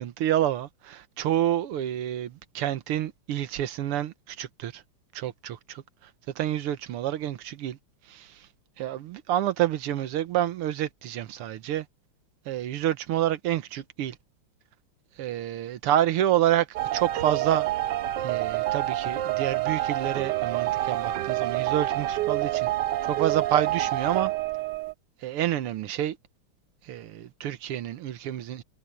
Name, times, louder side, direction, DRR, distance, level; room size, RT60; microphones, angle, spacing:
voice 1, 0.0-4.8 5.2-5.8 6.4-7.8 8.1-8.3 8.8-11.9 12.5-14.2 15.2-16.7 16.9-17.7 18.2-22.7 23.1-24.3 25.2-26.2 26.9-28.6, right 11 dB, 85° right, 1.9 m, -28 dB
Calming Background Music Orchestra, 16.7-24.9, right 14 dB, 70° right, 1.1 m, -27 dB
omnidirectional pair, 2.4 m